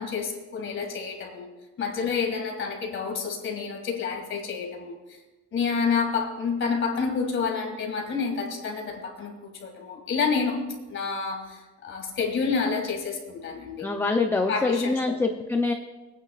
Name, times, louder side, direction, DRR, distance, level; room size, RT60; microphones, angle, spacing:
voice 1, 0.0-5.2 5.5-13.9 14.5-15.2, left 5 dB, 40° left, 3 dB, 2.0 m, -29 dB
voice 2, 13.8-15.7, left 3 dB, 10° left, 4 dB, 0.5 m, -25 dB
24.5 x 9.1 x 2.4 m, 1.1 s
cardioid pair, 155°, 31 cm